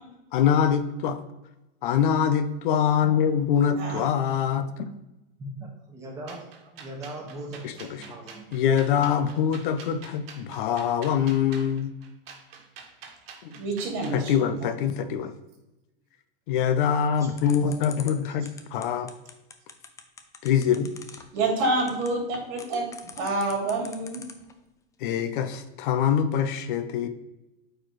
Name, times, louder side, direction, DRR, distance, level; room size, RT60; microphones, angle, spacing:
voice 1, 0.3-1.2 1.8-4.9 7.6-8.0 8.5-11.9 13.4-13.6 14.1-15.3 16.5-19.1 20.4-20.9 25.0-27.1, left 8 dB, 60° left, 10 dB, 0.7 m, -24 dB
voice 2, 3.6-4.0 13.5-14.3 14.6-14.7 21.3-24.2, right 2 dB, 55° right, 1 dB, 2.4 m, -28 dB
voice 3, 5.4-8.5 17.2-18.4, right 1 dB, 10° right, -2 dB, 1.5 m, -40 dB
sound 1, 6.3-14.2, right 6 dB, 75° right, 1.5 m, -46 dB
sound 2, 17.4-24.5, left 6 dB, 10° left, 0.4 m, -43 dB
8.7 x 4.6 x 3.2 m, 0.96 s
supercardioid pair, 140°, 29 cm